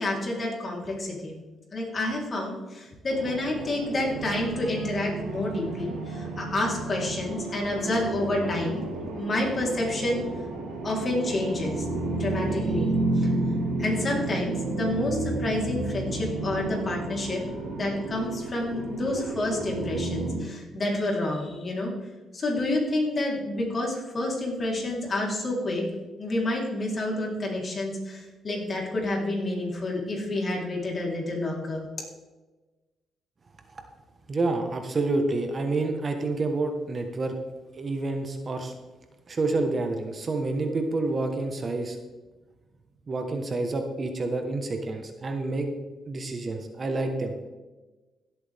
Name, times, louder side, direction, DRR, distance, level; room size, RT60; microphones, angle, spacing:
voice 1, 0.0-1.4 1.7-8.8 9.2-10.2 10.8-13.3 13.8-21.9 22.3-25.8 26.2-31.9, left 1 dB, 40° left, -2 dB, 3.8 m, -29 dB
sound 1, 3.1-20.3, right 2 dB, 90° right, 4.0 m, -31 dB
voice 2, 34.3-37.4 37.8-38.7 39.3-42.0 43.1-45.7 46.1-47.3, right 2 dB, 40° right, 5 dB, 1.3 m, -28 dB
16.5 x 8.0 x 3.6 m, 1.2 s
cardioid pair, 90°, 0 cm